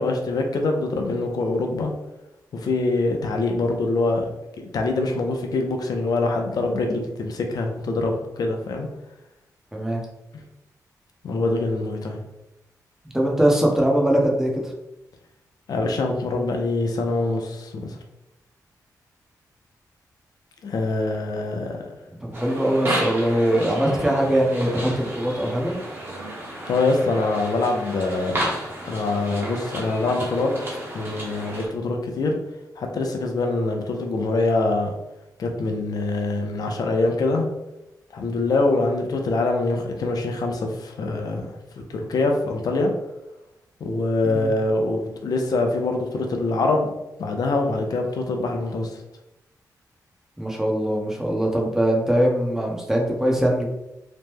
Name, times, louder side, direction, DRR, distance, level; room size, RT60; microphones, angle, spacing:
voice 1, 0.0-1.9 2.5-4.3 4.6-8.9 11.2-12.2 15.7-17.9 20.6-21.8 26.7-28.5 28.8-30.6 30.9-32.4 32.8-34.9 35.4-37.5 38.1-41.4 41.8-42.9 43.8-46.9 47.2-48.9, left 2 dB, 70° left, 3 dB, 0.5 m, -24 dB
voice 2, 9.7-10.0 13.1-14.7 22.2-25.8 44.2-44.5 50.4-53.7, right 1 dB, 5° right, -1 dB, 0.7 m, -22 dB
sound 1, 22.3-31.7, right 1 dB, 35° right, 1.0 m, -32 dB
2.9 x 2.1 x 3.4 m, 0.92 s
cardioid pair, 85°, 7 cm